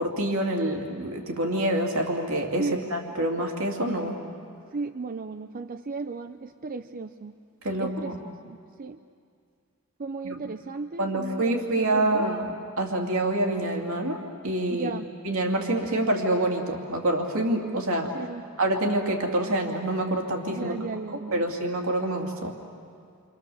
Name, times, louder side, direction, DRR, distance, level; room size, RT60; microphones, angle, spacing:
voice 1, 0.0-4.2 7.6-8.2 10.2-10.4 11.0-14.9 15.2-18.1 18.6-20.7 21.1-22.5, right 1 dB, 70° right, 1 dB, 2.8 m, -27 dB
voice 2, 4.7-7.3 7.8-8.2 8.4-9.0 10.0-12.3 14.7-15.1 18.1-18.4 20.5-21.4, right 4 dB, 40° right, 8 dB, 0.6 m, -35 dB
29.0 x 26.5 x 7.1 m, 2.3 s
head